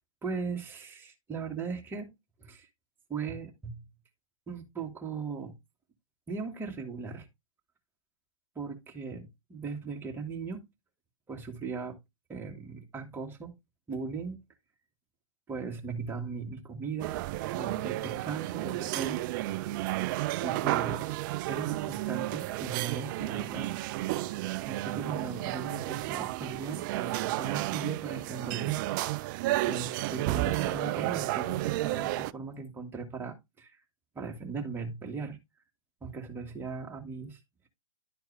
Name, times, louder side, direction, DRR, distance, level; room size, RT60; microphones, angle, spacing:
voice 1, 0.2-2.1 2.4-2.7 3.1-3.8 4.5-5.5 6.3-7.3 8.6-10.6 11.3-12.0 12.3-13.5 13.9-14.4 15.5-17.2 17.5-19.7 20.4-23.7 24.7-29.0 29.6-33.8 34.2-35.4 36.0-37.4, right 5 dB, 15° right, 1.8 m, -38 dB
sound 1, 17.0-32.3, right 17 dB, 40° right, 0.4 m, -32 dB
11.0 x 4.4 x 3.4 m
hypercardioid pair, 120°, 17 cm